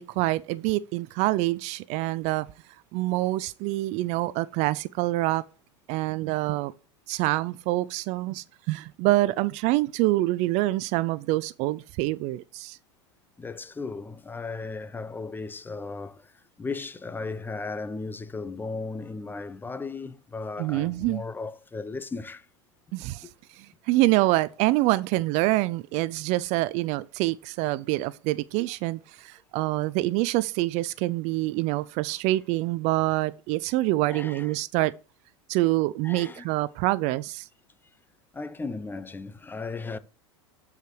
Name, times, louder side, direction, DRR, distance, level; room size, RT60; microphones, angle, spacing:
voice 1, 0.0-2.5 2.9-5.4 5.9-6.7 7.1-12.8 20.6-21.2 22.9-34.9 35.5-37.5, right 18 dB, 50° right, 0.4 m, -26 dB
voice 2, 13.4-22.5 23.2-23.3 34.1-34.5 36.0-36.4 38.3-40.0, left 3 dB, 15° left, 0.6 m, -36 dB
13.0 x 4.8 x 3.2 m
hypercardioid pair, 95°, 15 cm